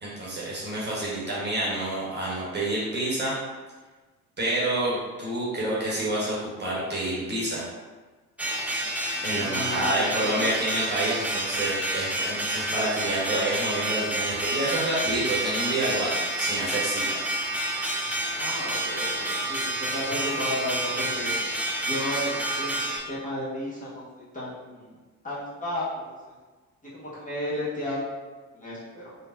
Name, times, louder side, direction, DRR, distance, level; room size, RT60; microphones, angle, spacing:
voice 1, 0.0-3.4 4.4-7.6 9.2-17.2, right 1 dB, 25° right, -7 dB, 1.1 m, -28 dB
sound 1, 8.4-23.0, right 1 dB, 5° right, 0.4 m, -29 dB
voice 2, 9.4-10.5 18.4-21.6 21.9-24.9 25.2-26.3 26.9-28.0 28.5-29.2, left 1 dB, 20° left, -9 dB, 1.1 m, -33 dB
3.7 x 2.2 x 2.6 m, 1.3 s
figure-of-eight pair, 55°, 43 cm